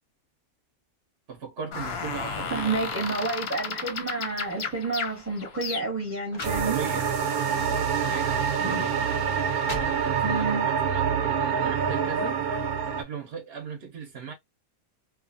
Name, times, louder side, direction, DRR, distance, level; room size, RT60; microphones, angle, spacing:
voice 1, 1.3-2.7 6.6-7.1 7.5-9.0 9.7-14.3, right 6 dB, 50° right, 0.9 m, -38 dB
sound 1, 1.7-6.2, left 5 dB, 55° left, 0.8 m, -34 dB
voice 2, 2.5-6.8 8.6-8.9 10.2-10.7, right 3 dB, 10° right, 1.0 m, -30 dB
sound 2, 5.0-5.2 5.9-6.0 6.3-7.2 7.8-7.9 8.7-8.8 9.3-10.5, left 2 dB, 35° left, 0.5 m, -40 dB
sound 3, 6.4-13.0, right 7 dB, 80° right, 1.2 m, -26 dB
2.7 x 2.4 x 2.5 m
omnidirectional pair, 1.5 m